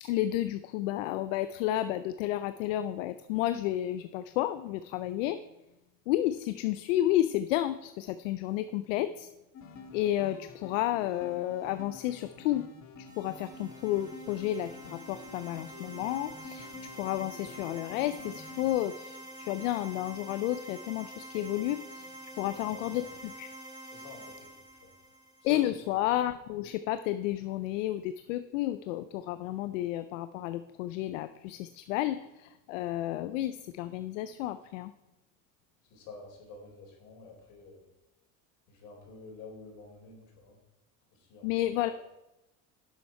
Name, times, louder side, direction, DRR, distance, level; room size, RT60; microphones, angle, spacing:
voice 1, 0.0-5.4 6.1-9.3 9.9-12.7 13.0-16.7 16.9-22.1 22.4-23.5 25.4-34.9 41.4-41.9, left 13 dB, 90° left, 12 dB, 0.5 m, -31 dB
sound 1, 9.5-18.7, left 3 dB, 45° left, 1.7 m, -49 dB
sound 2, 13.1-25.8, right 1 dB, 10° right, 2.2 m, -47 dB
voice 2, 22.3-23.1 23.9-24.5 24.8-24.9 25.4-25.6 35.9-37.8 38.7-40.6 41.1-41.9, left 3 dB, 70° left, 0 dB, 3.9 m, -49 dB
10.5 x 7.2 x 4.3 m, 0.98 s
supercardioid pair, 100°, 37 cm